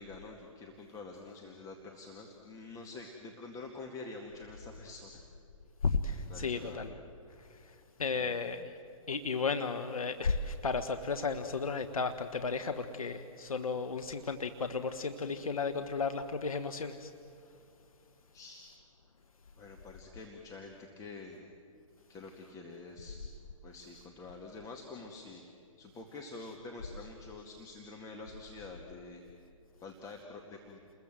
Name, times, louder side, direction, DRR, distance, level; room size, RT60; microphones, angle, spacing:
voice 1, 0.0-5.2 6.1-6.8 8.1-8.7 18.3-18.7 19.6-21.5 22.1-23.2 23.6-25.4 25.8-29.2 29.8-30.8, left 3 dB, 20° left, 1 dB, 2.1 m, -47 dB
voice 2, 5.8-7.0 7.4-7.6 8.0-8.6 9.1-17.1, left 4 dB, 90° left, 8 dB, 1.3 m, -34 dB
30.0 x 21.5 x 7.7 m, 2.5 s
hypercardioid pair, 130°, 18 cm